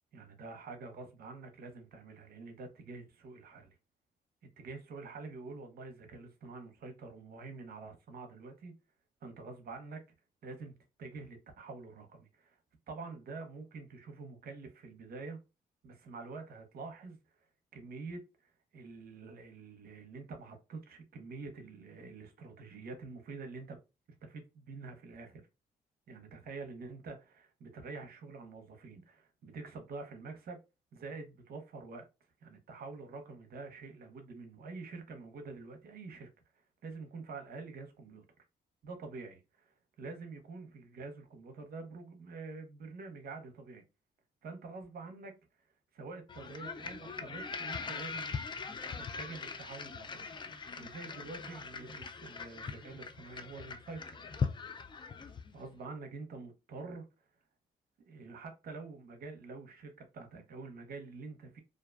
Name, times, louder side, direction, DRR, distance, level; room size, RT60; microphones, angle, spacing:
voice 1, 0.1-3.8 4.6-8.8 9.2-10.0 10.4-12.6 12.9-15.4 15.8-17.5 17.7-23.8 24.2-25.4 26.1-30.6 30.9-32.1 32.4-36.3 36.8-38.2 38.8-43.8 44.4-45.3 45.9-48.3 49.0-54.2 55.5-57.0 58.1-61.6, right 3 dB, 65° right, 0.7 m, -47 dB
sound 1, 46.3-55.6, left 5 dB, 30° left, 0.4 m, -41 dB
2.4 x 2.2 x 2.3 m
cardioid pair, 70°, 17 cm